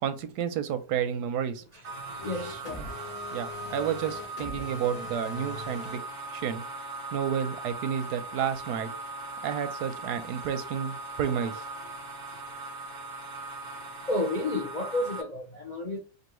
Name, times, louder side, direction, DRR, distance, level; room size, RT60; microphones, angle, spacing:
voice 1, 0.0-1.6 2.8-2.9 3.3-6.0 6.3-6.6 7.1-8.9 9.4-11.6, right 8 dB, 90° right, 1.2 m, -31 dB
voice 2, 1.7-2.8 14.1-16.0, left 1 dB, 50° left, 0.4 m, -31 dB
sound 1, 1.8-15.2, right 2 dB, 50° right, 0.7 m, -39 dB
sound 2, 2.2-6.0, left 4 dB, 75° left, 1.5 m, -42 dB
4.5 x 2.7 x 3.0 m
omnidirectional pair, 1.7 m